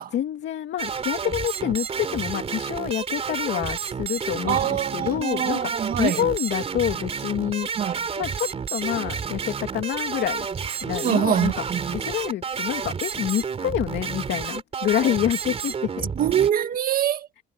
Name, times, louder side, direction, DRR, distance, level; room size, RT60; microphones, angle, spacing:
voice 1, 0.1-5.7 6.0-7.7 8.2-10.5 10.8-11.6 11.9-16.1, left 11 dB, 65° left, 2.5 m, -27 dB
sound 1, 0.8-16.5, right 6 dB, 30° right, 3.3 m, -30 dB
voice 2, 4.5-6.3 7.8-8.0 11.0-12.0 16.2-17.3, right 10 dB, 45° right, 1.8 m, -24 dB
cardioid pair, 150°, 20 cm